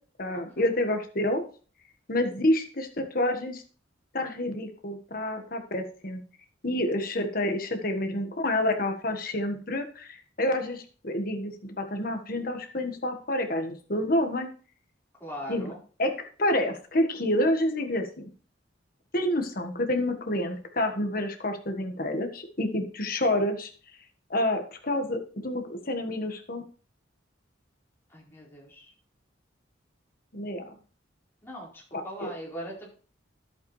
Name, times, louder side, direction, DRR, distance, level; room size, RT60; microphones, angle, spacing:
voice 1, 0.2-1.4 2.1-3.6 4.1-6.2 6.6-14.5 15.5-15.7 16.0-16.1 16.4-18.3 19.1-23.7 24.3-26.6 30.3-30.6 31.9-32.3, left 1 dB, 50° left, 6 dB, 1.5 m, -28 dB
voice 2, 15.2-15.8 28.1-28.9 31.4-32.9, equal, 10° left, -5 dB, 4.6 m, -40 dB
11.5 x 8.1 x 3.3 m, 0.39 s
head